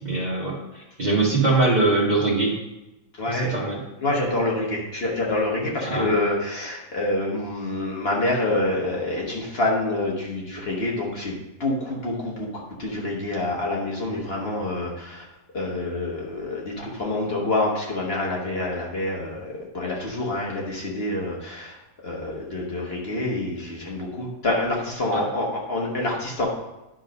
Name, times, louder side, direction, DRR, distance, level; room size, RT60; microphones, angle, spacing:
voice 1, 0.0-2.5 3.3-3.8 5.8-6.1 25.1-25.2, right 3 dB, 30° right, -3 dB, 1.6 m, -22 dB
voice 2, 3.1-3.6 4.0-15.2 15.5-21.8 22.0-26.5, left 2 dB, 45° left, -3 dB, 1.5 m, -27 dB
10.5 x 3.8 x 5.2 m, 0.97 s
omnidirectional pair, 1.5 m